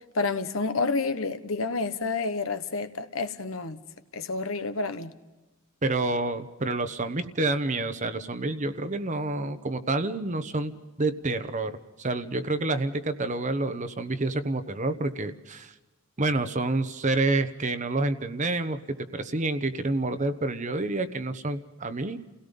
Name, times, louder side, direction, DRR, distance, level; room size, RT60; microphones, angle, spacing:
voice 1, 0.1-3.8 4.1-5.1, left 3 dB, 70° left, 1.2 m, -29 dB
voice 2, 5.8-15.7 16.2-22.2, right 2 dB, 35° right, 1.0 m, -28 dB
30.0 x 17.5 x 5.4 m
head